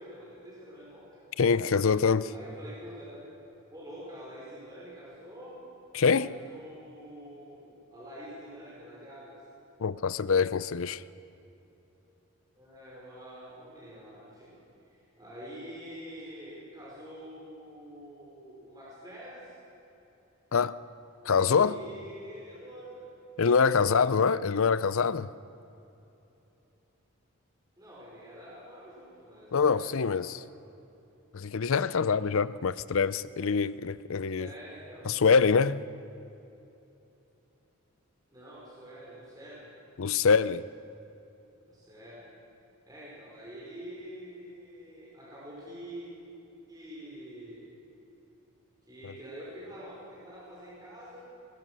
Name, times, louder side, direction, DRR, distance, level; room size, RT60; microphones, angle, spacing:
voice 1, 0.0-1.2 2.3-3.2 3.7-5.6 6.2-7.6 7.9-9.4 12.6-14.5 14.9-19.5 21.2-23.0 23.8-24.0 27.8-30.4 34.4-35.2 38.3-39.7 41.7-42.3 42.9-46.1 46.7-47.7 48.9-51.3, equal, 15° right, 5.1 m, -46 dB
voice 2, 1.4-2.3 5.9-6.3 9.8-11.0 20.5-20.8 21.2-21.8 23.4-25.3 29.5-30.4 31.3-34.5 35.1-35.9 40.0-40.7 49.0-49.1, left 5 dB, 70° left, 0.5 m, -25 dB
21.0 x 20.5 x 6.3 m
head